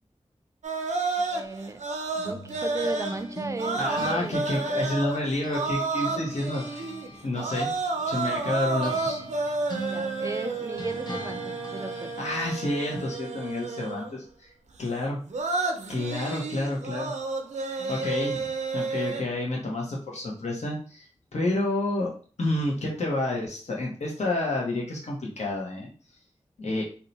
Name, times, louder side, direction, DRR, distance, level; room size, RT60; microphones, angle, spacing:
sound 1, 0.6-7.1 7.3-14.2 15.2-19.2, right 3 dB, 85° right, 0.5 m, -31 dB
voice 1, 1.2-1.9 2.2-4.8 9.9-12.1 17.8-18.1, right 2 dB, 25° right, 8 dB, 0.4 m, -36 dB
sound 2, 2.2-5.7 6.0-12.4, right 1 dB, 35° left, 0.8 m, -42 dB
voice 2, 3.8-6.9 7.2-7.7 8.0-9.2 12.2-14.5 14.8-15.2 15.9-17.1 17.9-22.1 22.4-25.9 26.6-26.8, left 2 dB, 75° left, -3 dB, 0.9 m, -29 dB
2.8 x 2.2 x 3.9 m, 0.40 s
cardioid pair, 50°, 12 cm